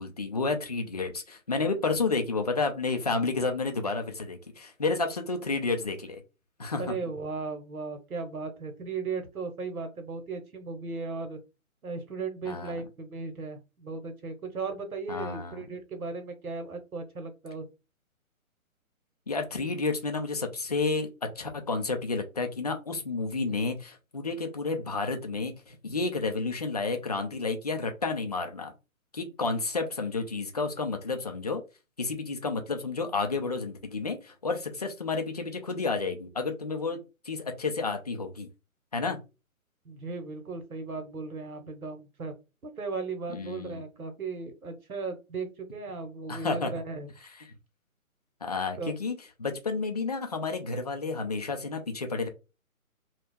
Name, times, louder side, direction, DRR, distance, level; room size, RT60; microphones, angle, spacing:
voice 1, 0.0-6.2 6.6-6.8 12.5-12.7 15.1-15.6 19.3-21.1 21.4-28.7 29.1-31.6 32.0-37.0 37.2-38.5 38.9-39.2 43.3-43.8 46.3-46.7 47.4-47.5 48.4-52.3, left 3 dB, 30° left, 0.4 m, -31 dB
voice 2, 6.8-11.4 11.8-17.6 39.8-42.3 42.6-47.1 48.8-48.9, right 4 dB, 85° right, 1.2 m, -36 dB
2.8 x 2.4 x 3.5 m
figure-of-eight pair, 140°, 42 cm